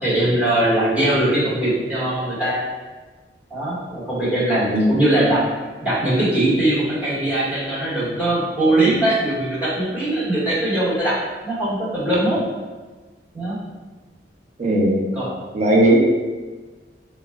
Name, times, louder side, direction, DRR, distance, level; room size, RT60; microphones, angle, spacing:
voice 1, 0.0-2.6 3.5-5.4 5.8-11.1 11.4-12.4 13.3-13.6 15.1-15.3, right 1 dB, 10° right, -11 dB, 1.1 m, -21 dB
voice 2, 14.6-15.0 15.5-16.0, right 1 dB, 40° right, -3 dB, 0.5 m, -17 dB
2.3 x 2.1 x 3.3 m, 1.3 s
head